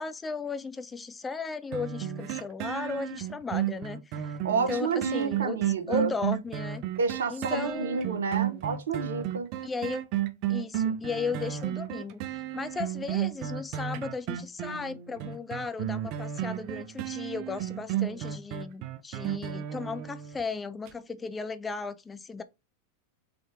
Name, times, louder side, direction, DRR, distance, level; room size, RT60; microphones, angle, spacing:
voice 1, 0.0-5.6 5.9-6.8 7.3-8.1 9.6-10.1 10.5-22.4, left 4 dB, 15° left, 0.3 m, -36 dB
sound 1, 1.7-20.4 20.9-21.0, right 11 dB, 40° right, 0.5 m, -33 dB
voice 2, 4.4-6.1 7.0-9.5, right 5 dB, 65° right, 0.9 m, -29 dB
3.8 x 3.7 x 3.5 m
figure-of-eight pair, 90°, 0 cm